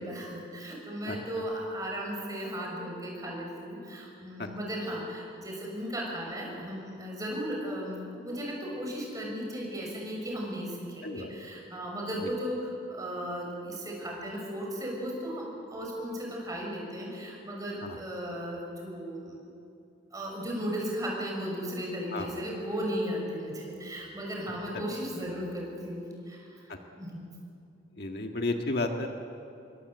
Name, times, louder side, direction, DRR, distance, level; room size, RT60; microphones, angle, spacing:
voice 1, 0.0-19.4 20.1-27.2, equal, 20° right, -1 dB, 6.5 m, -36 dB
voice 2, 1.1-1.4 4.4-4.5 11.0-11.3 12.2-12.3 17.8-18.0 22.1-22.3 26.7-26.8 27.9-29.1, left 2 dB, 55° left, 3 dB, 1.7 m, -33 dB
28.0 x 23.0 x 8.0 m, 2.6 s
head